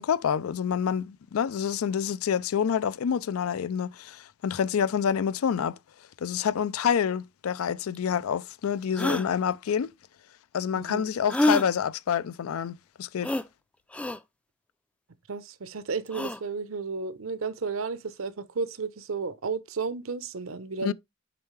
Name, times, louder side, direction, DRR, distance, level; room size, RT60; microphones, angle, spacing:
voice 1, 0.0-5.8 6.2-9.9 10.5-13.3 20.8-20.9, left 7 dB, 90° left, 0.4 m, -27 dB
sound 1, 7.9-8.0 8.9-9.3 11.3-11.7 13.2-13.5 13.9-14.2 16.1-16.4, left 1 dB, 5° left, 0.3 m, -26 dB
voice 2, 10.7-11.0 15.3-20.9, right 4 dB, 70° right, 0.7 m, -33 dB
6.9 x 4.4 x 3.1 m
head